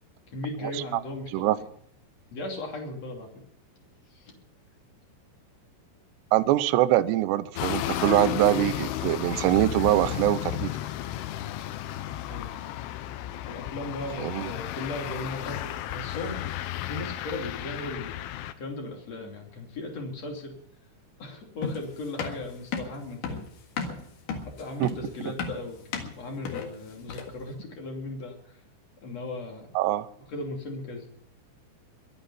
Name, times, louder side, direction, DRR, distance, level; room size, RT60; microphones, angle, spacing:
voice 1, 0.3-1.7 2.3-3.3 4.1-4.3 12.3-12.5 13.2-16.6 16.9-18.3 18.6-20.5 21.2-23.5 24.5-25.8 26.1-28.5 29.0-29.7 30.3-31.1, left 2 dB, 40° left, 1 dB, 3.3 m, -37 dB
voice 2, 6.3-10.7 14.2-14.5 24.8-24.9 29.8-30.1, right 14 dB, 80° right, 10 dB, 2.5 m, -23 dB
sound 1, 7.6-18.5, left 13 dB, 80° left, 3.3 m, -33 dB
sound 2, 21.6-27.5, left 5 dB, 60° left, 2.5 m, -35 dB
22.5 x 9.1 x 5.6 m, 0.65 s
omnidirectional pair, 5.8 m